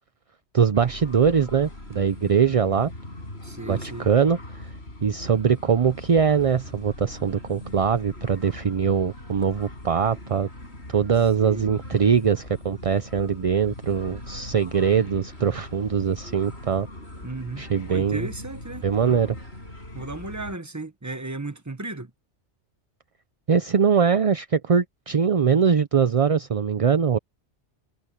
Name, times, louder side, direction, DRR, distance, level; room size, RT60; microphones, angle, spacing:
voice 1, 0.5-2.9 3.7-4.7 5.0-10.5 10.9-16.9 17.6-18.3 18.8-19.3 23.5-27.2, right 7 dB, 40° right, 0.5 m, -22 dB
sound 1, 0.7-20.6, left 1 dB, 65° left, 6.0 m, -40 dB
voice 2, 3.4-4.1 11.4-11.8 17.2-19.2 19.9-22.1, right 2 dB, 15° right, 1.2 m, -35 dB
omnidirectional pair, 1.2 m